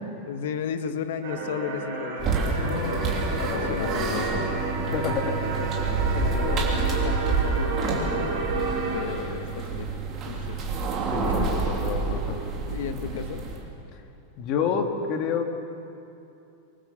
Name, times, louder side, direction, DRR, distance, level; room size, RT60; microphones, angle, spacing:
voice 1, 0.3-4.2 5.0-8.3 8.9-9.9 10.2-10.6 11.3-11.5 12.7-13.4, left 7 dB, 65° left, 8 dB, 1.4 m, -34 dB
sound 1, 1.2-9.0, right 3 dB, 50° right, 7.2 m, -31 dB
sound 2, 2.2-13.6, right 4 dB, 20° right, 3.1 m, -28 dB
voice 2, 2.6-4.4 4.8-5.4 11.1-12.4 13.9-14.0 14.4-15.5, left 6 dB, 35° left, 4 dB, 1.9 m, -30 dB
24.0 x 23.5 x 7.1 m, 2.7 s
supercardioid pair, 180°, 0 cm